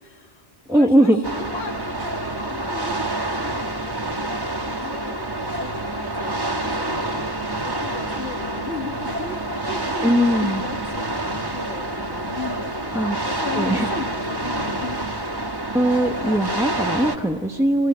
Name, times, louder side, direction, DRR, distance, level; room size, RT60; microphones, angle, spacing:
voice 1, 0.0-3.4 4.6-7.1 7.5-12.7 13.3-15.0, left 4 dB, 85° left, 4 dB, 2.2 m, -36 dB
voice 2, 0.7-1.2 10.0-10.6 12.9-13.2 13.6-13.9 15.7-17.9, right 1 dB, 5° right, 3 dB, 0.8 m, -20 dB
sound 1, 1.2-17.2, right 2 dB, 20° right, 1.5 m, -27 dB
28.0 x 23.0 x 8.7 m, 2.1 s
omnidirectional pair, 1.1 m